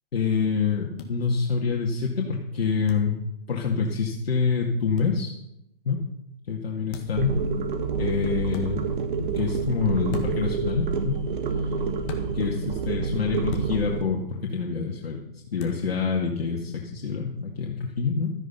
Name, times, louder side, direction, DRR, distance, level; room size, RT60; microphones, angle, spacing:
voice 1, 0.1-3.2 3.5-5.3 5.9-6.0 6.5-7.3 8.0-8.8 9.2-11.2 12.3-18.3, left 5 dB, 80° left, -1 dB, 2.3 m, -26 dB
sound 1, 1.0-1.1 2.9-3.1 5.0-5.1 6.9-7.2 8.5-8.7 10.1-10.5 12.1-12.3 13.5-13.7 15.6-15.8, left 5 dB, 30° left, 1.8 m, -36 dB
sound 2, 7.1-14.0, right 5 dB, 55° right, 1.8 m, -28 dB
13.0 x 9.4 x 5.9 m, 0.83 s
hypercardioid pair, 150°, 30 cm